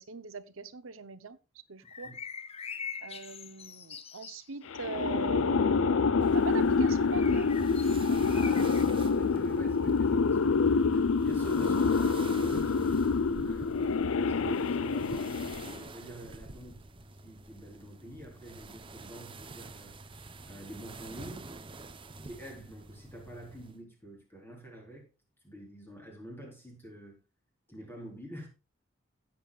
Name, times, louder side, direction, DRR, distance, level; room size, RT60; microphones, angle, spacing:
voice 1, 0.0-2.1 3.0-7.5 8.1-8.3, right 4 dB, 90° right, 0.9 m, -41 dB
sound 1, 1.8-4.5 6.9-8.8, left 6 dB, 30° left, 0.7 m, -43 dB
sound 2, 4.7-15.8, left 4 dB, 80° left, 0.5 m, -27 dB
sound 3, 6.2-23.8, right 2 dB, 25° right, 0.9 m, -48 dB
voice 2, 8.1-13.7 14.2-15.4 15.9-16.8 17.2-19.9 20.4-21.5 22.2-25.1 25.4-27.2 27.7-28.5, equal, 10° left, 4.3 m, -46 dB
16.5 x 7.7 x 2.4 m
head